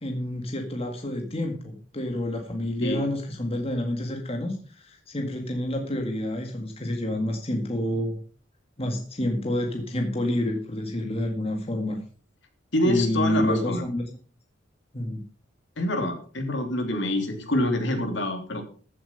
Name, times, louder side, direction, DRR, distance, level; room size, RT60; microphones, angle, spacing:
voice 1, 0.0-8.2 8.8-12.0 12.8-14.1 14.9-15.3, left 1 dB, 30° left, 3 dB, 1.9 m, -28 dB
voice 2, 12.7-13.8 15.8-18.6, left 1 dB, 65° left, 5 dB, 3.1 m, -26 dB
14.5 x 7.6 x 5.6 m, 0.40 s
head